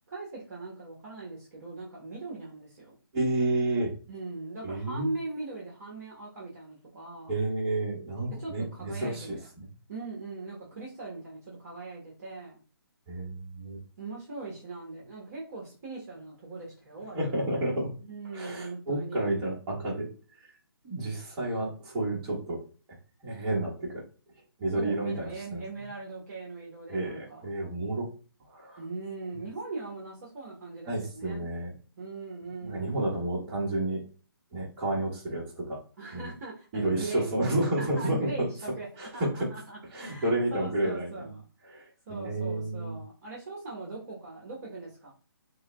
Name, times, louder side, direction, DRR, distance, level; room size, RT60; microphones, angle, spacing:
voice 1, 0.1-2.9 4.1-7.4 8.4-9.4 9.9-12.6 14.0-17.6 18.1-19.4 24.6-27.5 28.8-31.5 32.0-33.0 36.0-38.9 39.1-41.4 42.1-45.1, right 3 dB, 40° right, -4 dB, 1.1 m, -40 dB
voice 2, 3.1-3.9 4.6-5.1 7.3-9.7 13.1-13.8 17.1-17.9 18.3-20.1 20.8-22.6 23.2-24.0 24.6-25.6 26.9-28.1 28.5-28.8 30.9-31.7 32.6-34.0 34.5-35.8 36.1-36.3 36.7-38.5 39.0-39.5 39.9-41.3 41.7-43.0, right 1 dB, 20° right, -4 dB, 1.4 m, -30 dB
5.1 x 2.3 x 2.2 m, 0.38 s
figure-of-eight pair, 145°, 13 cm